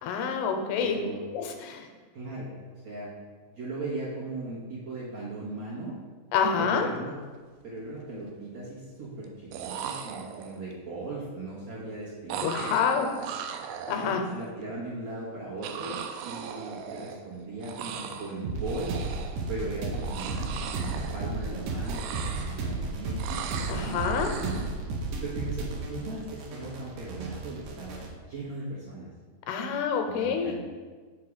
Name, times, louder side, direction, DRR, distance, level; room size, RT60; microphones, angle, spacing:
voice 1, 0.0-1.0 1.3-1.9 6.3-6.9 12.4-13.1 13.9-14.3 23.7-24.3 29.5-30.6, left 6 dB, 85° left, 4 dB, 2.6 m, -27 dB
voice 2, 0.8-1.2 2.1-2.5 2.8-3.1 3.5-6.0 6.6-7.2 7.6-12.8 13.9-16.0 16.2-18.9 19.5-22.0 22.3-24.0 24.4-24.6 25.2-28.0 28.2-29.1 30.1-30.6, right 2 dB, 55° right, -8 dB, 2.0 m, -38 dB
sound 1, 7.1-7.3 7.6-8.2 9.2-9.3 9.5-10.7 12.3-14.5 15.6-17.4 17.6-18.4 18.6-19.5 19.9-21.5 21.8-22.8 23.2-24.7, right 7 dB, 90° right, 2.7 m, -38 dB
sound 2, 18.4-28.1, right 3 dB, 70° right, 2.1 m, -34 dB
6.1 x 4.6 x 6.5 m, 1.5 s
omnidirectional pair, 4.7 m